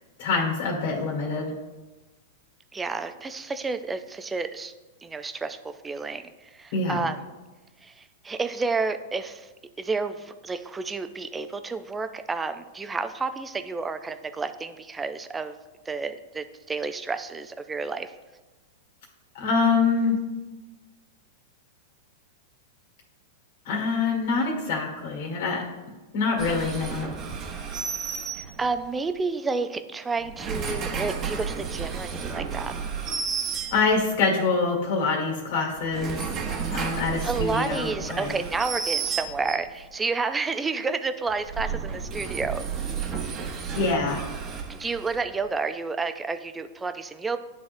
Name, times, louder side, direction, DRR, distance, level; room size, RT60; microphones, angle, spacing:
voice 1, 0.2-1.5 6.7-7.1 19.3-20.2 23.7-25.6 26.1-27.1 33.7-36.2 36.7-38.3 43.8-44.2, left 4 dB, 65° left, -2 dB, 1.8 m, -25 dB
voice 2, 2.7-4.7 5.0-7.2 7.8-9.5 9.8-15.6 15.9-18.1 28.3-32.7 37.2-42.6 44.7-47.4, right 4 dB, 15° right, 9 dB, 0.4 m, -30 dB
sound 1, 26.4-28.9 30.2-34.2 35.7-39.8 41.3-45.4, right 6 dB, 30° right, 0.9 m, -32 dB
10.5 x 3.5 x 2.6 m, 1.2 s
hypercardioid pair, 115°, 0 cm